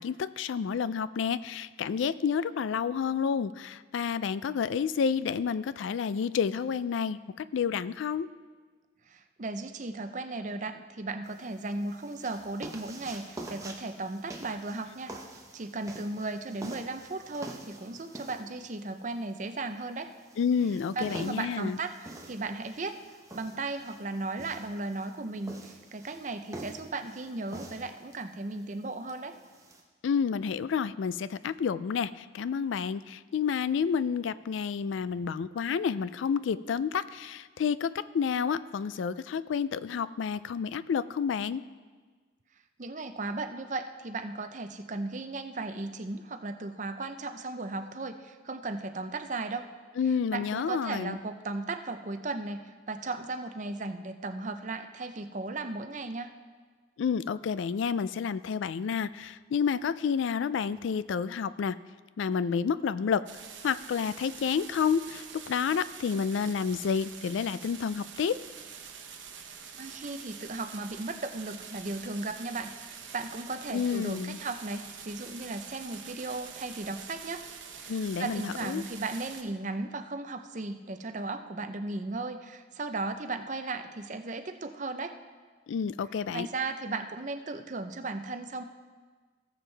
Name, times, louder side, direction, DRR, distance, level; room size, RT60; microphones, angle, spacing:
voice 1, 0.0-8.3 20.4-21.8 30.0-41.6 50.0-51.1 57.0-61.8 62.2-63.2 63.6-68.4 73.7-74.4 77.9-78.8 85.7-86.5, left 6 dB, 75° left, 16 dB, 0.3 m, -30 dB
voice 2, 9.1-15.2 15.5-20.1 21.0-23.0 23.3-29.4 42.8-49.7 50.3-56.3 69.4-77.4 77.8-85.2 86.3-88.6, right 3 dB, 40° right, 8 dB, 0.6 m, -36 dB
sound 1, 11.2-29.8, right 1 dB, 15° right, 0.9 m, -46 dB
sound 2, 63.3-79.4, right 7 dB, 80° right, 1.1 m, -46 dB
18.0 x 7.2 x 3.3 m, 1.4 s
head